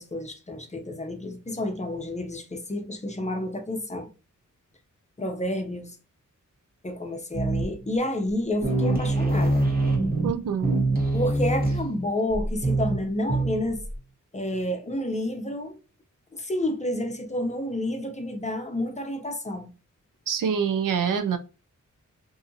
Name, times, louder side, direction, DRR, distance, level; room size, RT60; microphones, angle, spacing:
voice 1, 0.0-4.1 5.2-6.0 6.8-9.6 11.1-13.8 14.3-15.8 16.3-19.7, left 1 dB, 20° left, 0.6 m, -30 dB
sound 1, 7.3-7.9 8.3-8.4 8.6-14.0, right 2 dB, 30° right, 0.9 m, -25 dB
voice 2, 10.2-10.9 20.3-21.4, right 7 dB, 80° right, 0.5 m, -25 dB
2.7 x 2.5 x 2.6 m
wide cardioid pair, 90°, 32 cm